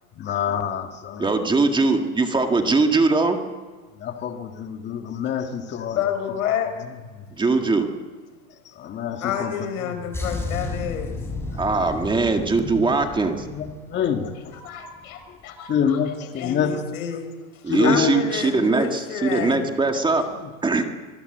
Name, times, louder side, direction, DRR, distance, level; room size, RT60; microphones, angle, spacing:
voice 1, 0.2-1.3 4.0-6.0 7.2-7.3 8.5-9.5 9.8-9.9 12.6-12.9 13.5-14.5 15.7-16.8 17.7-18.2 20.4-20.5, left 8 dB, 25° left, 5 dB, 1.8 m, -27 dB
voice 2, 1.2-3.4 7.3-7.9 11.6-13.5 17.6-20.3 20.6-20.8, right 3 dB, 10° right, 5 dB, 1.9 m, -21 dB
voice 3, 5.9-6.8 9.2-11.2 14.6-16.0 16.4-19.7, left 8 dB, 85° left, 8 dB, 4.9 m, -29 dB
sound 1, 10.1-14.7 15.0-15.2, left 2 dB, 5° left, 4.7 m, -33 dB
26.0 x 19.0 x 8.0 m, 1.4 s
supercardioid pair, 140°, 41 cm